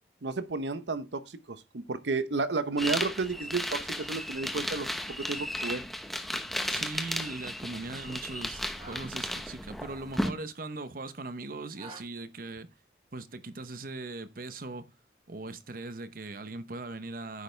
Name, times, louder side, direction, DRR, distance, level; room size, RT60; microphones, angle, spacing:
voice 1, 0.2-5.8, right 3 dB, 80° right, 0.8 m, -32 dB
sound 1, 2.8-10.3, equal, ahead, 0.9 m, -34 dB
sound 2, 6.1-12.0, right 2 dB, 35° right, 2.1 m, -55 dB
voice 2, 6.7-12.7 13.1-14.9 15.3-17.4, right 3 dB, 50° right, 0.8 m, -40 dB
9.7 x 6.8 x 3.3 m
head